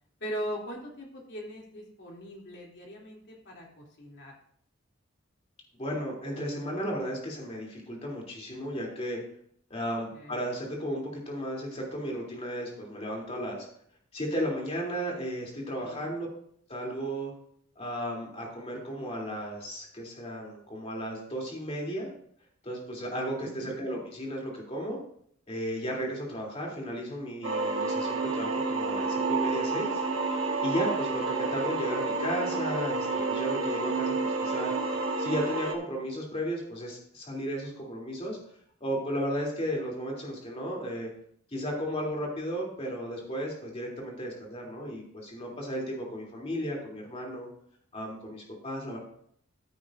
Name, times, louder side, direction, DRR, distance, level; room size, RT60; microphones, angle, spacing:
voice 1, 0.2-4.3 10.1-10.4 15.8-16.1 23.4-23.8, equal, 60° left, -2 dB, 2.9 m, -40 dB
voice 2, 5.8-9.2 9.7-13.7 14.1-16.3 16.7-17.3 17.8-22.1 22.6-25.0 25.5-30.0 30.6-34.7 35.2-38.4 38.8-41.1 41.5-47.5 47.9-49.0, equal, 30° left, -1 dB, 3.0 m, -34 dB
sound 1, 27.4-35.7, right 3 dB, 70° right, 1.4 m, -29 dB
14.5 x 8.9 x 2.6 m, 0.66 s
head